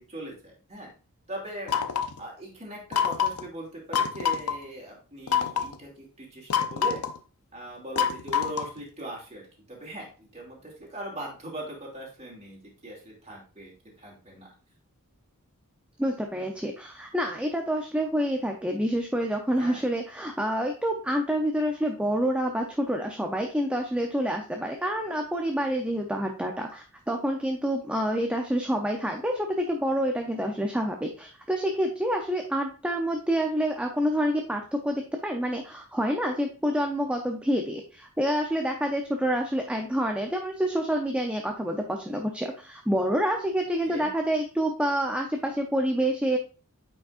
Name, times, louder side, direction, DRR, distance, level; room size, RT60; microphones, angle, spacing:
voice 1, 0.1-0.9 1.3-1.7 2.2-7.0 7.5-13.7 14.0-14.5 19.5-19.9 43.8-44.1, right 1 dB, 30° right, -2 dB, 2.5 m, -40 dB
sound 1, 1.7-2.2 2.9-3.4 3.9-4.5 5.3-5.7 6.5-7.2 8.0-8.8, left 7 dB, 70° left, 0.6 m, -26 dB
voice 2, 16.0-46.4, equal, 5° right, 3 dB, 0.6 m, -27 dB
9.0 x 5.4 x 2.5 m, 0.36 s
head